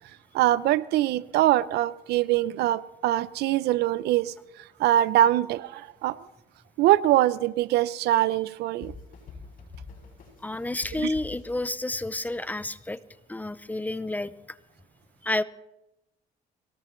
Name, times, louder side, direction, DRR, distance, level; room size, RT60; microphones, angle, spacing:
voice 1, 0.3-6.3 6.8-8.9 11.0-11.1, right 13 dB, 80° right, 0.6 m, -23 dB
sound 1, 8.8-12.4, left 4 dB, 55° left, 6.4 m, -45 dB
voice 2, 10.4-13.0 13.3-14.3 15.2-15.4, left 2 dB, 10° left, 0.6 m, -30 dB
23.5 x 18.0 x 3.2 m
cardioid pair, 110°, 17 cm